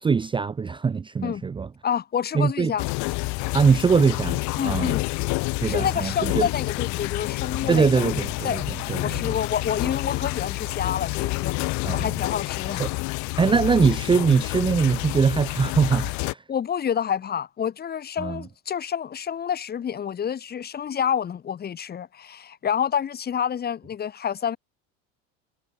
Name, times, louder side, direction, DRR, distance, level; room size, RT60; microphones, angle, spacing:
voice 1, 0.0-1.7 2.3-2.7 3.5-5.0 5.6-6.5 7.7-9.3 11.8-12.1 12.8-12.9 13.4-16.4 18.2-18.4, right 5 dB, 15° right, 0.6 m, -22 dB
voice 2, 1.8-2.8 4.6-5.0 5.6-8.0 8.4-8.6 9.0-12.8 16.5-24.6, left 8 dB, 30° left, 1.7 m, -28 dB
sound 1, 2.8-16.3, left 26 dB, 65° left, 0.8 m, -28 dB
supercardioid pair, 120°, 32 cm